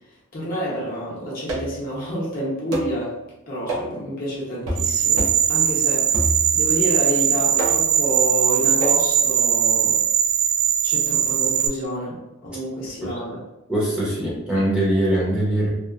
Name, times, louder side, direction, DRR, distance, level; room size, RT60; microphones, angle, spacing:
voice 1, 0.3-3.2 3.5-10.0 10.8-13.4, equal, 40° left, -5 dB, 0.7 m, -29 dB
sound 1, 1.5-1.9 2.7-3.0 3.7-4.0 4.7-4.9 5.2-5.5 6.1-6.7 7.6-8.0 8.8-9.0, right 1 dB, 90° right, 0.7 m, -27 dB
sound 2, 4.8-11.7, right 9 dB, 65° right, 0.3 m, -20 dB
voice 2, 13.7-15.7, right 1 dB, 5° right, -8 dB, 0.6 m, -22 dB
2.8 x 2.0 x 2.4 m, 0.94 s
head